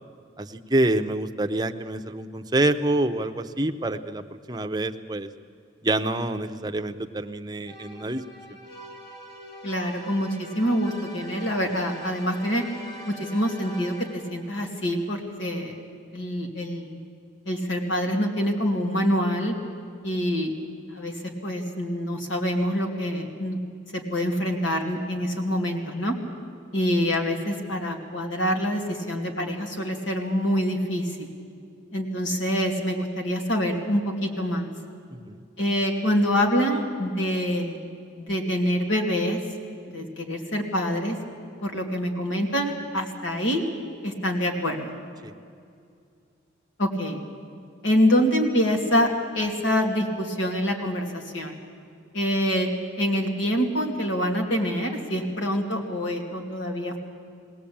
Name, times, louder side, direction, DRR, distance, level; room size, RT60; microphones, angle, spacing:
voice 1, 0.4-5.3 5.8-8.2 8.5-8.6 35.1-35.4 45.2-45.3, right 1 dB, 20° right, 7 dB, 0.7 m, -27 dB
sound 1, 7.7-14.5, equal, 20° left, 2.3 m, -43 dB
voice 2, 9.6-12.6 13.0-15.8 16.1-17.0 17.5-19.5 20.0-20.5 20.9-21.1 21.4-23.6 24.1-26.1 26.7-31.3 31.9-34.7 35.6-37.8 38.2-39.4 39.9-41.2 41.6-43.6 44.0-44.9 46.8-47.2 47.8-49.1 49.3-51.6 52.1-52.7 53.0-57.0, equal, 75° left, 2 dB, 2.7 m, -25 dB
21.5 x 17.5 x 8.7 m, 2.4 s
head